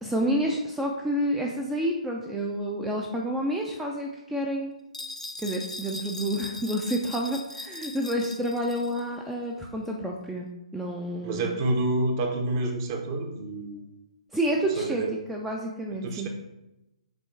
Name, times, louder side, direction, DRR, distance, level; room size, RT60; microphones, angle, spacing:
voice 1, 0.0-4.7 5.4-11.5 14.3-15.0 15.3-16.3, equal, 5° right, 0 dB, 0.5 m, -29 dB
sound 1, 4.9-9.1, left 2 dB, 85° left, 0.7 m, -39 dB
voice 2, 11.2-13.8 14.8-15.1 16.0-16.3, right 2 dB, 30° right, 4 dB, 0.9 m, -28 dB
6.8 x 3.7 x 4.6 m, 0.93 s
figure-of-eight pair, 130°, 4 cm